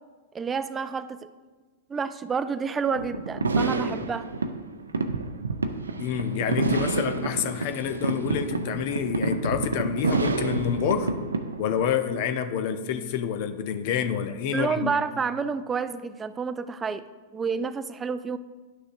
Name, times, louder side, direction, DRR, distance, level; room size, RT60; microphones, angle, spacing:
voice 1, 0.3-1.3 1.9-4.3 14.5-17.1 17.3-18.4, right 5 dB, 20° right, 13 dB, 0.4 m, -29 dB
sound 1, 3.0-11.9, right 3 dB, 85° right, 0.5 m, -28 dB
voice 2, 6.0-11.1 11.6-14.9, left 8 dB, 50° left, 9 dB, 0.7 m, -28 dB
11.5 x 6.3 x 2.6 m, 1.4 s
figure-of-eight pair, 100°, 0 cm